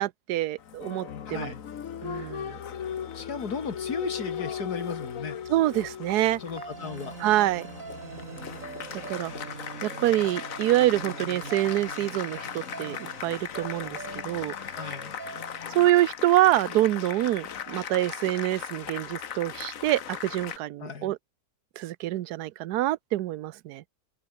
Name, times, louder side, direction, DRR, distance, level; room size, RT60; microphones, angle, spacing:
voice 1, 0.0-1.5 2.0-2.6 5.5-6.4 7.2-7.7 8.9-9.3 9.8-14.8 15.7-21.2 21.8-23.8, right 15 dB, 85° right, 1.2 m, -26 dB
Applause, 0.6-20.6, left 8 dB, 60° left, 1.5 m, -38 dB
voice 2, 1.3-1.6 3.1-5.4 6.4-7.2 14.8-15.1 20.8-21.2, left 5 dB, 85° left, 2.7 m, -35 dB
sound 1, 6.6-16.8, right 4 dB, 55° right, 3.2 m, -43 dB
open air
omnidirectional pair, 1.6 m